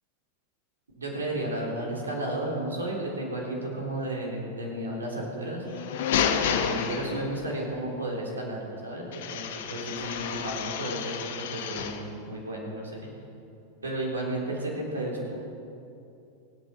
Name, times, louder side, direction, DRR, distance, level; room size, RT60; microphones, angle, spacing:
voice 1, 1.0-5.6 6.5-13.1 13.8-15.4, right 1 dB, 75° right, -2 dB, 3.5 m, -33 dB
sound 1, 5.6-7.6 9.1-12.1, left 7 dB, 55° left, 1.1 m, -30 dB
24.5 x 8.8 x 4.3 m, 2.7 s
figure-of-eight pair, 90°, 0 cm